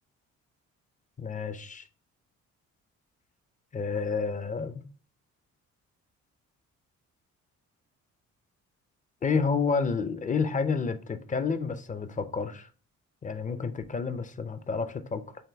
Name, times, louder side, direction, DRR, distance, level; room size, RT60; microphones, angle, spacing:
voice 1, 1.2-1.9 3.7-4.8 9.2-12.7 13.2-15.4, left 5 dB, 25° left, 0.5 m, -30 dB
6.4 x 2.2 x 3.4 m
cardioid pair, 90°, 30 cm